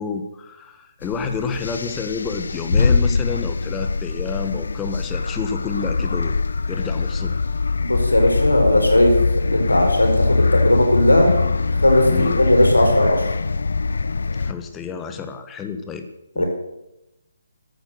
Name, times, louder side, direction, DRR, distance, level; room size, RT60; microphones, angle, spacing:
voice 1, 0.0-6.4 6.7-7.3 12.1-12.4 14.4-16.1 16.3-16.4, left 5 dB, 10° left, 7 dB, 1.4 m, -29 dB
sound 1, 1.0-14.5, left 4 dB, 60° left, 0.8 m, -22 dB
voice 2, 7.8-11.4 11.7-13.2 16.4-16.5, left 1 dB, 80° left, 3 dB, 4.7 m, -17 dB
14.0 x 12.0 x 6.7 m, 0.90 s
figure-of-eight pair, 140°, 0 cm